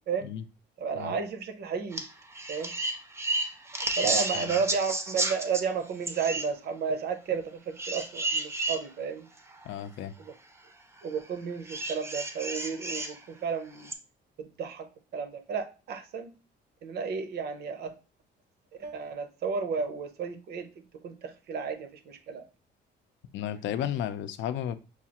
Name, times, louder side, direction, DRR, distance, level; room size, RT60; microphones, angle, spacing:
voice 1, 0.8-2.0 2.5-2.7 4.0-9.3 10.2-10.3 11.0-13.9 14.4-16.3 16.8-17.9 18.8-20.7 21.0-22.4, right 6 dB, 60° right, 8 dB, 0.7 m, -32 dB
sound 1, 1.9-2.1 2.3-5.6 6.1-6.5 7.8-8.8 9.5-9.6 11.7-13.1 13.8-13.9, right 2 dB, 15° right, 0.5 m, -31 dB
voice 2, 4.1-4.6 9.6-10.1 23.3-24.8, left 10 dB, 80° left, 11 dB, 0.5 m, -34 dB
6.1 x 2.4 x 2.9 m, 0.33 s
cardioid pair, 170°, 19 cm